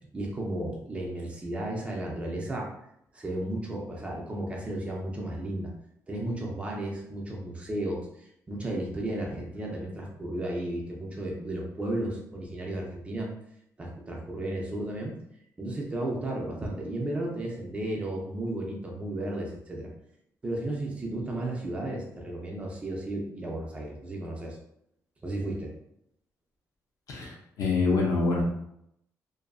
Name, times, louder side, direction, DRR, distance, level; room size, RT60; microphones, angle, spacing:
voice 1, 0.1-2.7 3.1-5.7 6.1-13.3 13.8-15.1 15.6-19.9 20.4-24.6 25.2-25.7, right 1 dB, 20° right, -1 dB, 0.5 m, -34 dB
voice 2, 27.1-28.4, left 3 dB, 65° left, -1 dB, 0.7 m, -26 dB
2.6 x 2.4 x 2.3 m, 0.76 s
cardioid pair, 165°, 6 cm